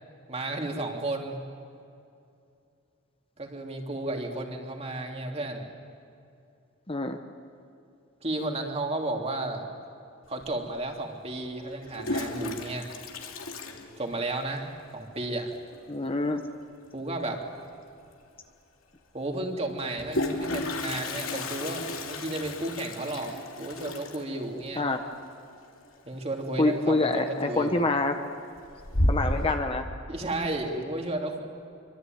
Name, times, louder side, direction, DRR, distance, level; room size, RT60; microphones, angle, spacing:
voice 1, 0.3-1.4 3.4-5.7 8.2-9.6 10.3-12.9 14.0-14.7 14.9-15.5 16.9-17.4 19.1-24.9 26.0-27.8 30.1-31.4, right 2 dB, 30° right, 2 dB, 3.0 m, -33 dB
voice 2, 6.9-7.2 15.9-16.4 24.7-25.0 26.6-28.1 29.1-29.8, left 2 dB, 25° left, 6 dB, 1.2 m, -26 dB
Toilet flush, 10.4-10.5 11.7-14.5 14.8-14.9 15.2-15.3 15.5-15.9 17.7-17.8 18.1-18.2 19.7-26.4 26.7-27.2 27.6-28.1 28.5-29.5, left 1 dB, 80° left, 2.9 m, -32 dB
26.0 x 24.5 x 9.3 m, 2.5 s
head